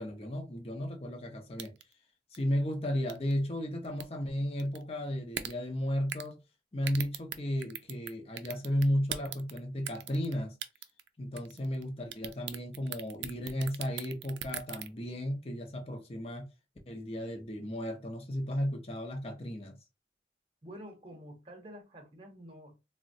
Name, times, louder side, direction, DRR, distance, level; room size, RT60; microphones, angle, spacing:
voice 1, 0.0-1.7 2.3-6.4 6.7-10.5 11.2-16.5 16.9-19.8, equal, 35° left, 0.6 m, -34 dB
sound 1, 1.6-1.9 2.3-2.4 3.1-3.3 3.8-4.0 4.6-4.8 5.3-5.5 6.1-6.3 6.8-8.1 8.4-9.6 9.9-10.3 10.6-11.1 11.4-11.8 12.1-14.9, right 10 dB, 85° right, 0.4 m, -38 dB
voice 2, 20.6-22.8, equal, 30° right, 0.8 m, -48 dB
3.8 x 2.1 x 2.5 m
head